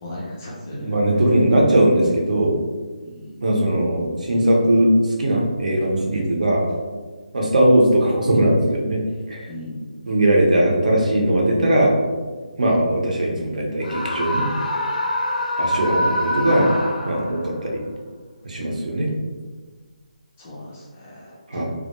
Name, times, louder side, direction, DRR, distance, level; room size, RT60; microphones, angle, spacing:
voice 1, 0.0-1.2 3.0-3.4 9.5-9.8 20.4-21.6, left 1 dB, 15° left, -5 dB, 0.3 m, -37 dB
voice 2, 0.7-2.6 3.4-6.6 7.3-9.0 9.3-9.5 10.1-11.9 12.6-14.5 15.6-16.7 17.1-17.8 18.4-19.1 21.5-21.6, right 1 dB, 65° right, -1 dB, 0.6 m, -19 dB
Screaming, 13.8-17.5, left 1 dB, 80° left, 0.5 m, -25 dB
2.2 x 2.1 x 2.9 m, 1.4 s
hypercardioid pair, 170°, 4 cm